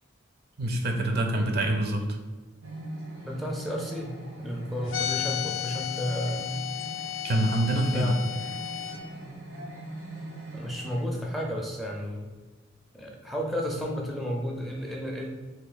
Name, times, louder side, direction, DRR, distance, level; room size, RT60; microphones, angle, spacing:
voice 1, 0.6-2.1 7.2-8.2, right 1 dB, 55° right, 3 dB, 0.5 m, -25 dB
sound 1, 2.6-11.0, right 2 dB, 85° right, 0.9 m, -42 dB
voice 2, 3.2-4.1 4.4-6.6 7.7-8.2 10.5-12.3 12.9-15.3, equal, ahead, -1 dB, 0.4 m, -32 dB
sound 2, 4.9-9.0, left 11 dB, 90° left, 0.4 m, -33 dB
2.9 x 2.6 x 4.0 m, 1.3 s
head